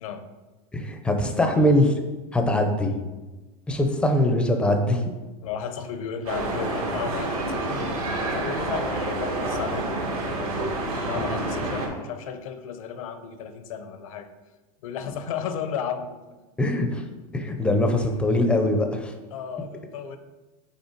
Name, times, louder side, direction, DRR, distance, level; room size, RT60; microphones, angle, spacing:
voice 1, 0.7-1.9 2.3-2.9 3.7-5.0 11.2-11.3 16.6-17.0 17.3-19.1, left 1 dB, 5° left, 5 dB, 0.5 m, -22 dB
voice 2, 5.4-7.9 8.3-10.7 11.1-14.3 14.8-16.1 17.7-18.2 19.3-20.2, left 7 dB, 70° left, 10 dB, 0.7 m, -34 dB
sound 1, 6.3-11.9, right 2 dB, 85° right, 1.8 m, -28 dB
5.7 x 4.2 x 4.4 m, 1.2 s
supercardioid pair, 155°, 18 cm